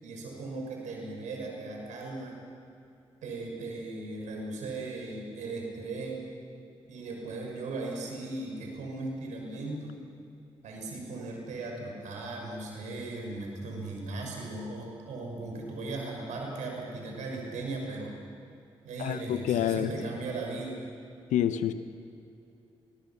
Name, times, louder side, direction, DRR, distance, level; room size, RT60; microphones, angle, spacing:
voice 1, 0.0-2.4 3.2-6.2 6.9-10.0 10.6-18.1 18.8-20.8, right 2 dB, 75° right, 0 dB, 6.2 m, -37 dB
voice 2, 19.0-19.9 21.3-21.7, left 10 dB, 80° left, 11 dB, 1.1 m, -27 dB
29.0 x 21.5 x 6.0 m, 2.7 s
hypercardioid pair, 40°, 13 cm